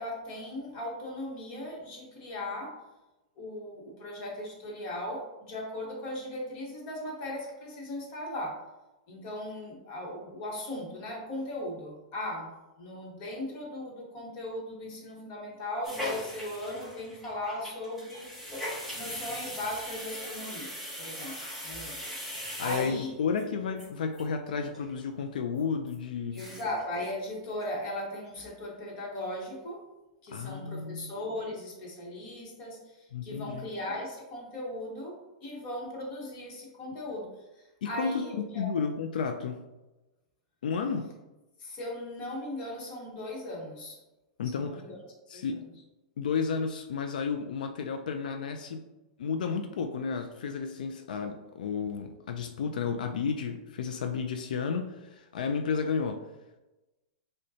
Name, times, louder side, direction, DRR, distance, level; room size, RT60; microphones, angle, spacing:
voice 1, 0.0-2.7 3.4-8.6 9.1-12.5 12.8-21.4 21.6-22.0 22.6-23.1 26.3-29.8 30.2-38.8 41.6-44.0 44.5-45.4, left 1 dB, 30° left, -2 dB, 1.1 m, -38 dB
sound 1, 15.8-23.4 23.8-23.9 24.1-24.2 24.5-24.9 25.2-25.3 25.9-26.0 26.2-26.8 27.1-27.2 27.5-28.0 28.4-28.5, left 1 dB, 5° left, 0.9 m, -40 dB
voice 2, 22.4-26.4 30.3-31.1 33.1-33.7 37.8-39.6 40.6-41.1 44.4-44.8 45.3-45.6 46.2-48.8 49.2-56.3, left 5 dB, 85° left, 6 dB, 0.3 m, -32 dB
6.2 x 2.2 x 2.7 m, 1.0 s
supercardioid pair, 170°, 4 cm